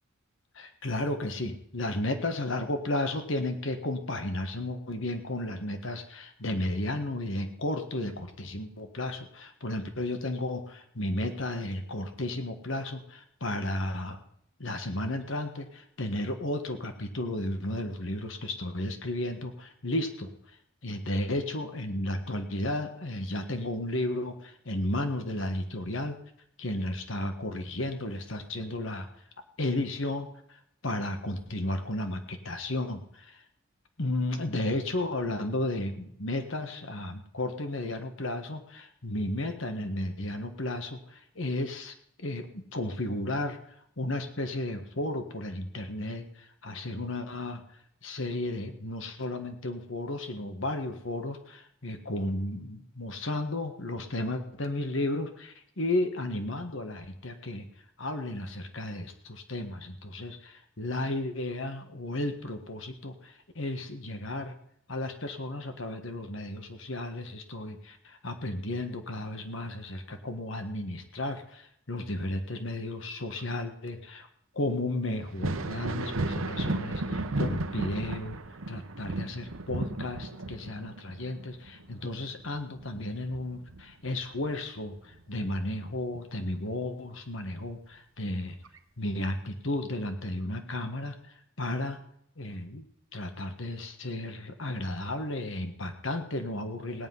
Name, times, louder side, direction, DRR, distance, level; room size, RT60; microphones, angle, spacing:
voice 1, 0.5-14.2 14.6-20.3 20.8-26.2 26.6-29.1 29.6-33.4 34.0-43.6 44.0-47.6 48.0-57.7 58.0-64.5 64.9-74.3 74.5-78.4 78.7-88.6 89.0-91.2 91.6-92.0 92.4-92.9 93.1-97.1, left 1 dB, 65° left, 7 dB, 1.6 m, -33 dB
Thunder, 75.3-84.6 85.0-86.2 87.8-87.9 88.6-88.8, right 2 dB, 80° right, 1.0 m, -35 dB
17.5 x 9.9 x 5.6 m, 0.72 s
head